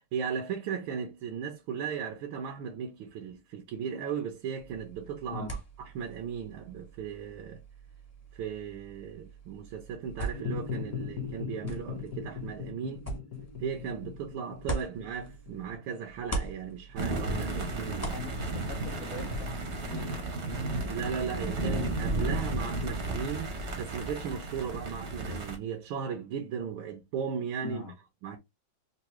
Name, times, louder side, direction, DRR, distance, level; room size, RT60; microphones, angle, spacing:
voice 1, 0.0-5.5 5.9-7.6 8.3-13.1 13.6-18.3 20.9-27.8 28.2-28.4, right 7 dB, 75° right, 1.5 m, -36 dB
sound 1, 4.6-15.8 16.1-19.5, right 2 dB, 10° left, 0.8 m, -42 dB
sound 2, 10.3-16.9, left 8 dB, 50° left, 1.4 m, -39 dB
sound 3, 16.9-25.6, right 2 dB, 45° right, 0.9 m, -33 dB
voice 2, 18.1-20.1 27.6-27.9, left 5 dB, 75° left, 0.7 m, -42 dB
3.8 x 2.6 x 3.0 m
omnidirectional pair, 2.3 m